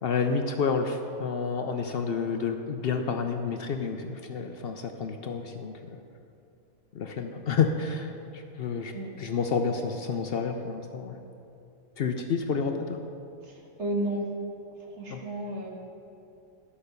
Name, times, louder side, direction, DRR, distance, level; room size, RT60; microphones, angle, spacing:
voice 1, 0.0-6.0 6.9-11.2 12.0-13.0 15.1-15.2, left 5 dB, 60° left, 5 dB, 0.6 m, -30 dB
voice 2, 13.4-14.3 14.9-15.7, right 1 dB, 50° right, -1 dB, 1.7 m, -32 dB
11.5 x 5.6 x 6.6 m, 2.6 s
omnidirectional pair, 1.5 m